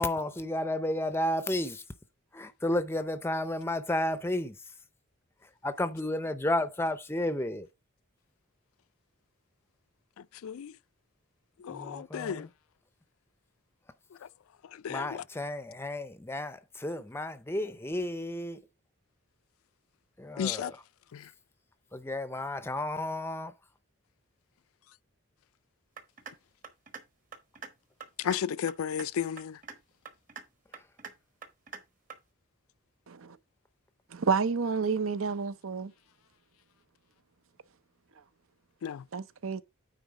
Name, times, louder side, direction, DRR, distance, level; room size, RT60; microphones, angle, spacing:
voice 1, 0.0-1.8 2.3-4.5 5.6-7.7 11.7-12.5 14.9-18.6 20.2-20.8 21.9-23.5, left 1 dB, 10° left, 0.5 m, -32 dB
voice 2, 11.6-12.5 14.8-15.2 20.4-20.7 21.1-21.2 28.2-29.6 38.8-39.0, left 8 dB, 85° left, 0.4 m, -33 dB
sound 1, 26.0-26.3 26.6-27.0 27.3-27.7 28.0-28.4 28.7-29.1 29.4-29.8 30.0-30.4 30.7-31.1 31.4-31.8 32.1-32.2, right 5 dB, 40° right, 1.2 m, -43 dB
voice 3, 34.1-35.9 39.1-39.6, right 5 dB, 75° right, 0.6 m, -29 dB
9.3 x 3.9 x 4.7 m
head